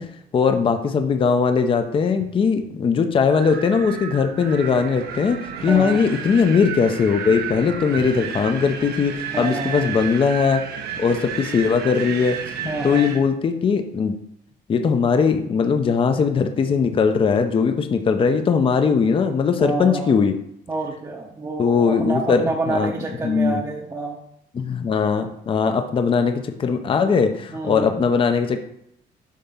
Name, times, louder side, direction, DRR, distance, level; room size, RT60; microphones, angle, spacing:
voice 1, 0.0-10.6 11.0-12.4 12.8-14.1 14.7-20.4 21.6-22.9 23.2-23.6 24.5-28.6, left 5 dB, 30° left, 7 dB, 0.6 m, -20 dB
Wind, 3.3-13.2, right 6 dB, 70° right, 0.9 m, -32 dB
voice 2, 5.7-6.0 9.3-10.0 12.7-13.1 19.6-20.1 20.7-24.2 27.5-27.9, right 3 dB, 20° right, -1 dB, 0.8 m, -28 dB
7.3 x 2.8 x 5.6 m, 0.74 s
cardioid pair, 110°, 17 cm